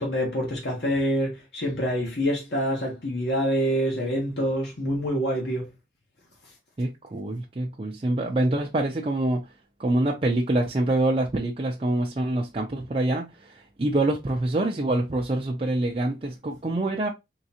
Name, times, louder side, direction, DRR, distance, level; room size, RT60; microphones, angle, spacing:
voice 1, 0.0-5.7, equal, 65° left, 1.3 m, -26 dB
voice 2, 6.8-9.5 9.8-17.1, right 2 dB, 30° right, 0.5 m, -26 dB
3.7 x 3.2 x 2.8 m
head